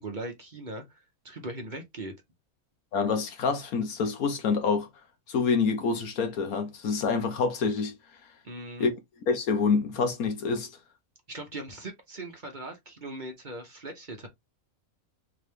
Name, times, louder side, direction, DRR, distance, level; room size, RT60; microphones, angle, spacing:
voice 1, 0.0-2.1 8.4-8.9 11.3-14.3, right 1 dB, 35° right, 1.1 m, -39 dB
voice 2, 2.9-4.9 5.3-7.9 8.8-8.9 9.3-10.7, left 5 dB, 80° left, 1.5 m, -26 dB
3.7 x 3.3 x 3.3 m
omnidirectional pair, 1.5 m